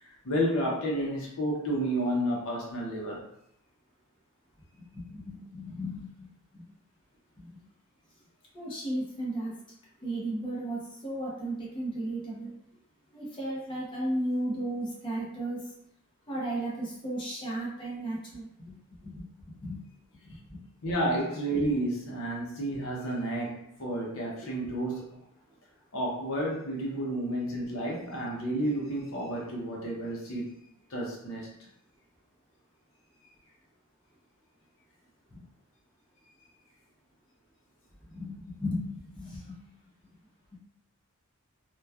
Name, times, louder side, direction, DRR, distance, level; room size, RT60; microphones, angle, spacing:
voice 1, 0.0-3.2 20.8-25.2 25.9-30.5 30.9-31.5, right 1 dB, 65° left, -3 dB, 0.6 m, -31 dB
voice 2, 4.8-6.3 6.5-6.7 7.4-7.5 8.5-9.5 10.0-12.5 13.1-15.6 16.3-18.8 19.0-19.8 20.2-20.6 35.3-35.4 38.0-39.6, right 1 dB, 20° left, -5 dB, 0.7 m, -35 dB
3.0 x 2.2 x 2.3 m, 0.75 s
head